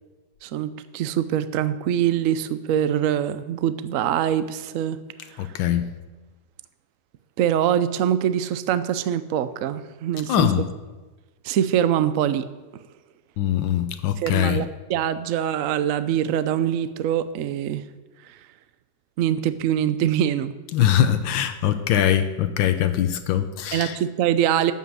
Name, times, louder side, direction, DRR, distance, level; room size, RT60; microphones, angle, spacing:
voice 1, 0.4-5.0 7.4-10.5 11.4-12.5 14.2-17.8 19.2-20.5 23.7-24.7, right 10 dB, 80° right, 13 dB, 0.7 m, -23 dB
voice 2, 5.4-5.9 10.3-10.7 13.4-14.6 20.7-24.0, left 10 dB, 80° left, 10 dB, 1.4 m, -22 dB
13.0 x 5.6 x 7.7 m, 1.2 s
omnidirectional pair, 2.1 m